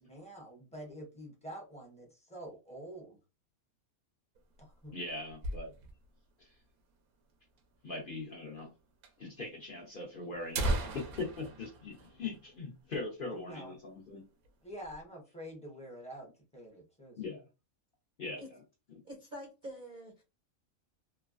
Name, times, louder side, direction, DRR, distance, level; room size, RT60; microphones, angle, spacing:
voice 1, 0.1-3.2 4.6-5.0 13.3-13.8 14.6-17.2, equal, 5° left, 0.7 m, -47 dB
sound 1, 4.3-6.2 6.5-6.6 6.8-6.9 7.6-7.7 8.6-8.7 9.0-9.1 9.9-10.0 10.3-12.9 13.2-13.4 13.8-14.0 14.4-15.0, right 2 dB, 85° right, 1.1 m, -37 dB
voice 2, 4.9-5.7 6.4-6.5 7.8-8.7 9.2-14.2 17.1-17.4 18.2-18.4 18.9-19.0, left 3 dB, 50° left, 0.7 m, -41 dB
voice 3, 19.0-20.2, equal, 50° right, 0.6 m, -46 dB
3.1 x 2.2 x 2.4 m
omnidirectional pair, 1.5 m